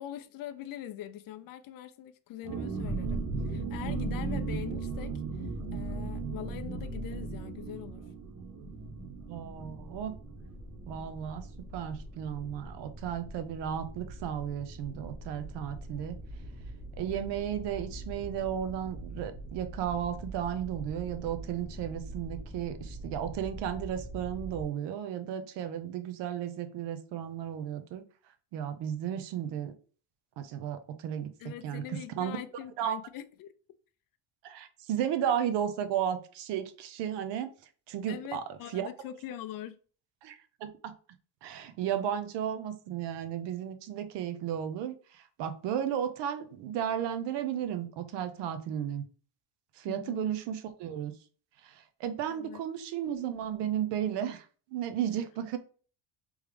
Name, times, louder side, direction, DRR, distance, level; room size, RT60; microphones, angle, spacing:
voice 1, 0.0-8.0 31.4-33.5 38.1-39.8 49.9-50.3 52.3-52.6, left 11 dB, 55° left, 0.5 m, -43 dB
sound 1, 2.4-11.9 12.1-12.2 12.5-12.8, right 4 dB, 50° right, 0.8 m, -36 dB
sound 2, 8.7-24.6, right 1 dB, 5° left, 0.8 m, -44 dB
voice 2, 9.3-10.1 10.9-11.5 11.7-16.2 17.0-28.0 28.5-29.7 30.4-31.3 31.6-31.8 32.2-32.4 32.8-33.0 34.4-37.5 37.9-38.4 38.7-38.9 40.2-40.9 41.4-49.0 49.8-51.1 51.6-54.5 54.7-55.6, right 9 dB, 85° right, 0.7 m, -34 dB
3.6 x 3.1 x 3.2 m
cardioid pair, 155°, 41 cm